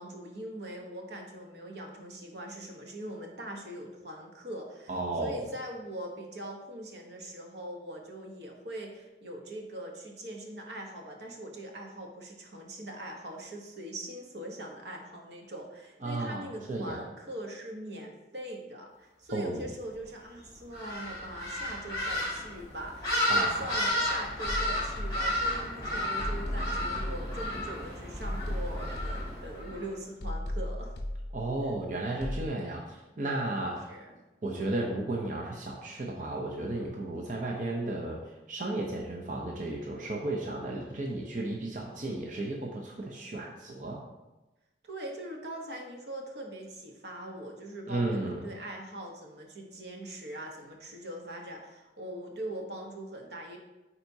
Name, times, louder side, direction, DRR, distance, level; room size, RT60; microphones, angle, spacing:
voice 1, 0.0-4.9 5.2-31.0 33.9-34.1 44.8-53.6, right 1 dB, 75° right, 1 dB, 1.0 m, -42 dB
voice 2, 4.9-5.3 16.0-16.4 16.7-17.0 19.3-19.7 23.3-23.7 31.3-33.9 34.4-38.2 38.5-44.0 47.9-48.4, right 2 dB, 45° right, -1 dB, 0.6 m, -33 dB
sound 1, 20.7-29.8, left 1 dB, 25° left, 2.2 m, -32 dB
sound 2, 24.5-25.8 26.2-27.8 28.2-29.8 30.2-31.8 32.2-32.5, left 1 dB, 70° left, 0.6 m, -36 dB
9.0 x 4.2 x 2.7 m, 1.0 s
head